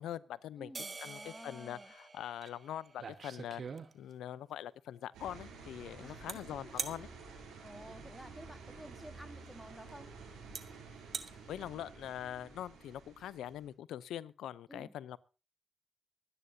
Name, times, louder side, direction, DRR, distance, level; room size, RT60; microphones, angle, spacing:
voice 1, 0.0-0.7 1.0-3.6 3.9-7.1 11.5-15.2, left 11 dB, 85° left, 0.6 m, -43 dB
voice 2, 0.6-1.9 6.0-6.6 7.6-10.1 14.7-14.9, equal, 5° right, 1.4 m, -52 dB
sound 1, 0.7-3.4, right 3 dB, 40° right, 0.8 m, -49 dB
sound 2, 2.4-2.5 2.9-4.3 6.3-6.4 6.8-7.0 8.9-9.0 9.9-10.0 10.5-10.6 11.0-11.3, right 6 dB, 60° right, 1.2 m, -41 dB
sound 3, 5.1-13.7, right 4 dB, 90° right, 7.3 m, -51 dB
24.5 x 9.9 x 2.7 m
supercardioid pair, 45°, 0 cm